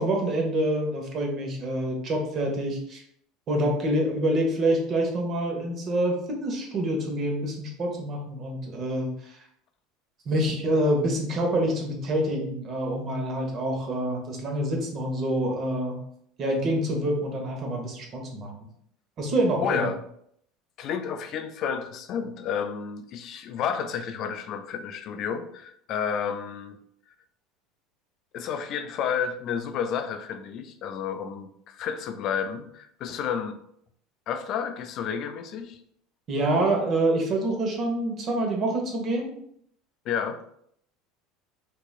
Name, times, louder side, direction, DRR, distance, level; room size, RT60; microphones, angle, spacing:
voice 1, 0.0-3.0 3.5-9.4 10.2-16.0 16.4-18.5 19.2-19.9 36.3-39.3, right 1 dB, 45° right, 1 dB, 1.0 m, -26 dB
voice 2, 19.6-20.0 20.8-26.8 28.3-33.6 34.3-35.8 40.1-40.4, left 7 dB, 55° left, 8 dB, 0.3 m, -31 dB
3.6 x 2.9 x 2.4 m, 0.69 s
supercardioid pair, 95°, 0 cm